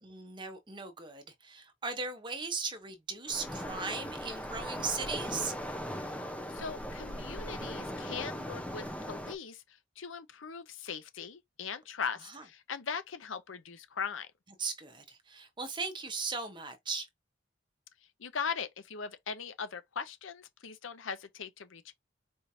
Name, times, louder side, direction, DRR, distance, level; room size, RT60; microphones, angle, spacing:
voice 1, 0.0-5.5 12.2-12.4 14.6-17.1, right 4 dB, 25° right, 0.9 m, -38 dB
Waves surf, 3.3-9.3, equal, 5° left, 0.7 m, -39 dB
voice 2, 6.0-9.6 10.0-14.3 18.2-21.9, left 6 dB, 80° left, 0.7 m, -40 dB
4.3 x 3.2 x 2.6 m
head